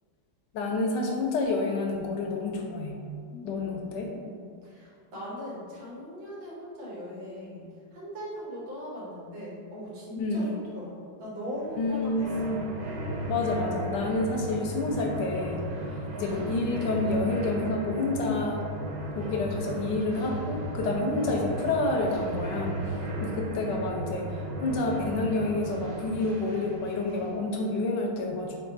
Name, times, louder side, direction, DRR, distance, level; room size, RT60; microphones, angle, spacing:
voice 1, 0.5-3.0 3.4-4.1 10.2-10.5 11.8-12.6 13.3-15.6 16.2-18.6 19.2-28.6, left 2 dB, 75° left, 1 dB, 1.1 m, -29 dB
voice 2, 3.3-12.6, equal, 90° right, -7 dB, 2.2 m, -40 dB
sound 1, 11.6-27.4, right 1 dB, 60° right, 1.0 m, -35 dB
4.5 x 2.6 x 4.5 m, 2.3 s
omnidirectional pair, 2.1 m